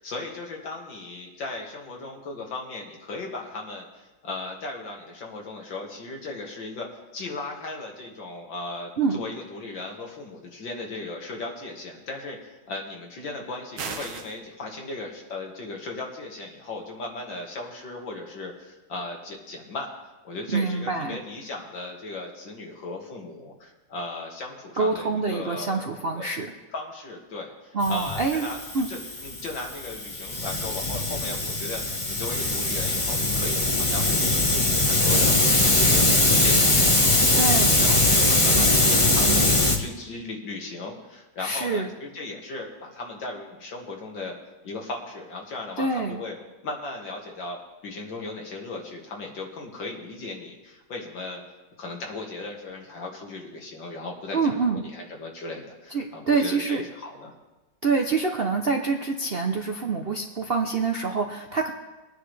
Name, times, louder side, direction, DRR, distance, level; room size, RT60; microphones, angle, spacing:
voice 1, 0.0-19.9 20.2-26.3 26.7-35.4 35.7-44.4 44.6-46.3 46.6-51.4 51.8-57.3, left 2 dB, 75° left, 0 dB, 2.6 m, -37 dB
sound 1, 13.8-14.4, right 5 dB, 70° right, 1.6 m, -34 dB
voice 2, 20.5-21.2 24.8-26.5 27.7-28.5 28.7-28.9 37.4-37.8 41.4-41.9 45.8-46.2 54.3-54.8 55.9-56.8 57.8-61.7, right 4 dB, 55° right, 2 dB, 0.7 m, -26 dB
Hiss, 27.8-39.8, left 2 dB, 20° left, 1.0 m, -21 dB
21.5 x 9.8 x 3.3 m, 1.1 s
omnidirectional pair, 2.0 m